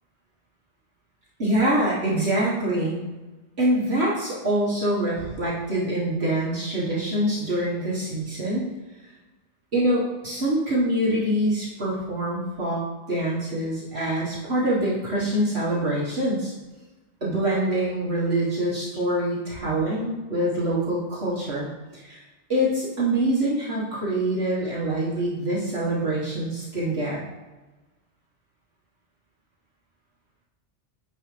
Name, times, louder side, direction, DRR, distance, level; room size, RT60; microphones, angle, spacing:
voice 1, 1.4-3.0 3.6-8.7 9.7-12.8 13.1-16.5 17.2-22.2 22.5-27.2, right 1 dB, 60° right, -8 dB, 1.9 m, -25 dB
9.5 x 4.9 x 3.3 m, 1.2 s
omnidirectional pair, 1.2 m